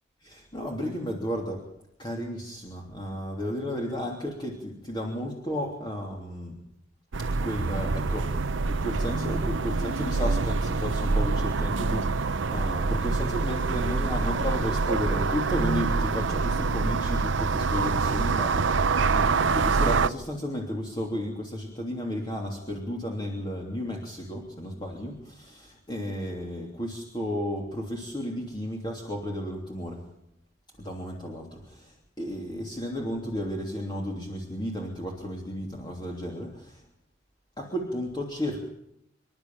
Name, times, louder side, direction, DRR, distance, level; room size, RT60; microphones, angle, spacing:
voice 1, 0.2-1.6 2.0-6.6 7.2-30.0 30.8-36.8 37.6-38.7, equal, 25° left, 0 dB, 3.1 m, -33 dB
sound 1, 7.1-20.1, right 4 dB, 70° right, 0.7 m, -26 dB
27.0 x 11.5 x 9.1 m, 0.80 s
head